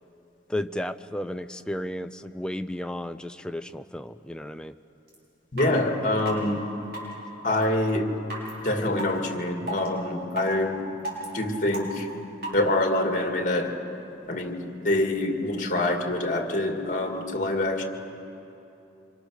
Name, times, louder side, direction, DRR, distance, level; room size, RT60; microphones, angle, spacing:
voice 1, 0.5-4.8, left 1 dB, 5° left, 9 dB, 0.5 m, -33 dB
sound 1, 5.1-5.2 5.6-5.7 6.2-6.3 6.9-7.1 7.6-7.7 8.3-8.5 9.0-9.1 9.7-9.9 10.3-10.5 11.0-11.2 11.7-12.0 12.4-12.5, right 1 dB, 55° right, 6.4 m, -32 dB
voice 2, 5.5-6.7 7.4-8.1 8.6-10.9 11.3-12.1 12.5-13.8 14.3-17.8, left 1 dB, 45° left, 3 dB, 2.3 m, -25 dB
26.5 x 26.0 x 6.5 m, 3.0 s
head